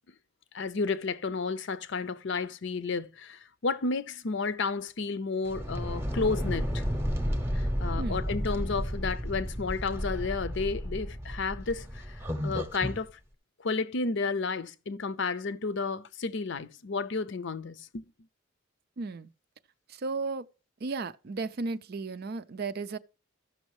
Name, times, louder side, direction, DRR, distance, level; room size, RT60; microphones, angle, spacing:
voice 1, 0.5-6.8 7.5-13.1 13.6-18.0, left 4 dB, 60° left, 0.6 m, -32 dB
sound 1, 5.4-13.0, equal, 10° right, 0.8 m, -32 dB
voice 2, 19.0-19.3 19.9-20.5 20.8-23.0, right 3 dB, 50° right, 0.4 m, -34 dB
14.5 x 6.2 x 3.1 m
head